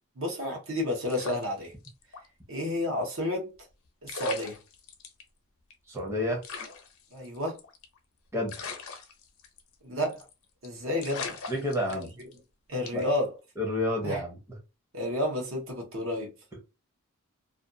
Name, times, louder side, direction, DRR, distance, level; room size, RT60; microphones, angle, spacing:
voice 1, 0.2-1.7 2.5-3.5 4.0-4.6 7.1-7.6 9.8-10.2 10.6-11.3 12.7-13.3 14.0-14.2 14.9-16.3, left 1 dB, 60° right, 0.8 m, -30 dB
sound 1, 1.1-2.3 2.6-2.7 3.7-3.8 4.1-5.2 5.7-5.8 6.0-6.1 6.4-8.0 8.5-9.7 10.0-10.3 10.6-10.7 11.0-12.4 12.9-13.2, left 5 dB, 70° left, 0.6 m, -40 dB
voice 2, 5.9-6.4 8.3-8.5 11.5-12.1 12.9-13.0 13.6-14.6, left 1 dB, 10° right, 0.6 m, -30 dB
2.4 x 2.3 x 2.6 m
head